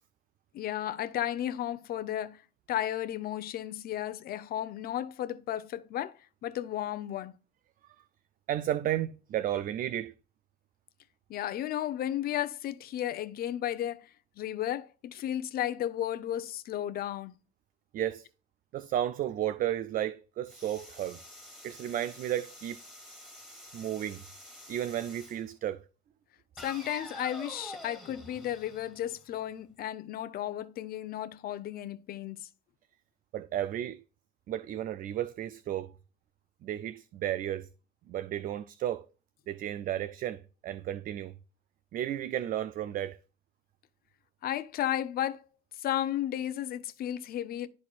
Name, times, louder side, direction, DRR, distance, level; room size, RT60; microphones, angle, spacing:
voice 1, 0.5-2.4 2.7-7.3 11.3-14.1 14.4-17.3 26.6-32.5 44.4-45.4 45.8-47.7, left 11 dB, 65° left, 0.8 m, -34 dB
voice 2, 8.5-10.1 17.9-18.3 18.7-21.2 21.6-22.8 23.7-24.2 24.7-25.8 33.3-34.0 34.5-35.9 36.6-37.7 38.1-39.1 39.5-41.3 41.9-43.2, right 12 dB, 55° right, 0.4 m, -33 dB
sound 1, 20.5-25.4 26.6-29.5, left 1 dB, 5° right, 2.3 m, -48 dB
12.0 x 4.1 x 2.4 m
cardioid pair, 110°, 17 cm